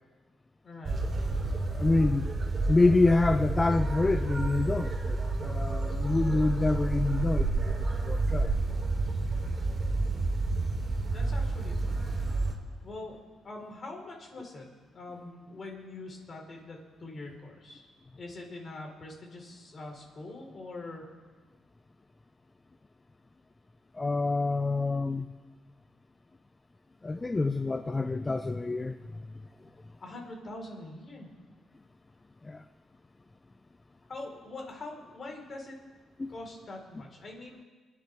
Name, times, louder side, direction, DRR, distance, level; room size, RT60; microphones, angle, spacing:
voice 1, 0.6-1.0 11.0-12.0 12.8-13.2 13.4-14.7 14.9-17.9 18.2-21.0 30.0-31.3 34.1-35.8 36.3-37.7, left 2 dB, 45° left, 0 dB, 4.1 m, -43 dB
sound 1, 0.8-12.5, right 3 dB, 40° right, 3.0 m, -30 dB
voice 2, 1.7-2.3 2.7-8.5 23.9-25.3 27.0-29.2 32.4-32.6 36.2-36.3, left 3 dB, 20° left, 9 dB, 0.4 m, -27 dB
26.0 x 10.0 x 3.4 m, 1.4 s
cardioid pair, 90°, 0 cm